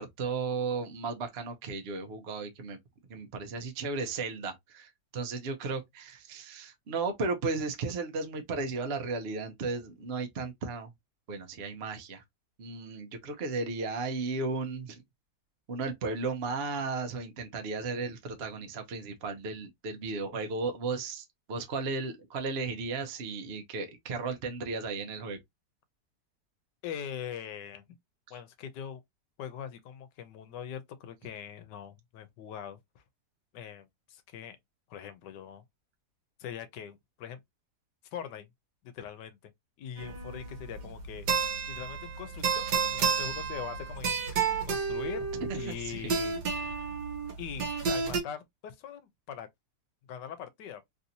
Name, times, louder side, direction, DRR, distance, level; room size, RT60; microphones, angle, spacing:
voice 1, 0.0-2.8 3.1-10.9 11.3-12.2 12.6-15.0 15.7-25.4 28.3-28.4 45.3-46.1, right 4 dB, 50° right, 0.8 m, -35 dB
voice 2, 26.8-27.8 28.3-29.0 29.4-33.0 33.5-34.6 34.9-35.6 36.4-37.4 38.1-38.5 38.8-39.5 39.8-41.3 41.7-45.3 45.5-46.4 47.4-49.5 50.1-50.8, left 8 dB, 80° left, 1.3 m, -42 dB
sound 1, 40.0-48.2, right 6 dB, 75° right, 1.4 m, -31 dB
3.3 x 2.6 x 2.7 m
omnidirectional pair, 1.8 m